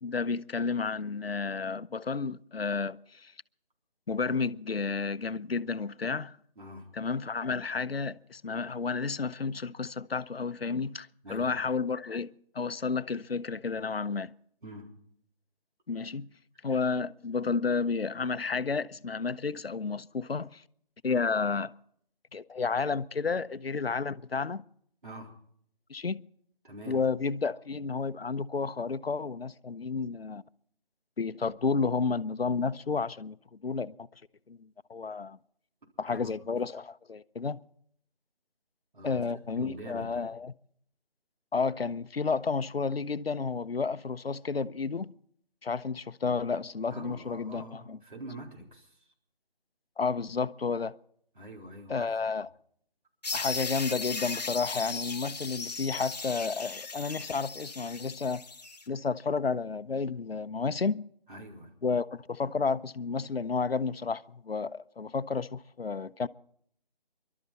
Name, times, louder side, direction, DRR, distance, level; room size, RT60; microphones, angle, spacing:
voice 1, 0.0-3.3 4.1-6.4 6.9-14.3 15.9-16.3 16.6-20.6 21.0-21.7 22.3-24.6 25.9-26.2 26.9-30.4 31.2-34.0 34.5-35.4 36.0-37.6 39.0-40.5 41.5-45.1 45.6-48.0 50.0-51.0 51.9-52.5 53.3-58.4 58.9-61.0 61.8-66.3, left 4 dB, 90° left, 0.7 m, -31 dB
voice 2, 6.6-6.9 11.2-11.6 14.6-14.9 25.0-25.3 26.6-27.0 36.0-36.3 38.9-40.2 46.9-49.1 51.3-52.2 61.3-61.7, right 1 dB, 60° right, 3.8 m, -45 dB
sound 1, 53.2-58.8, left 4 dB, 45° left, 0.9 m, -37 dB
24.5 x 12.5 x 4.0 m
figure-of-eight pair, 160°, 29 cm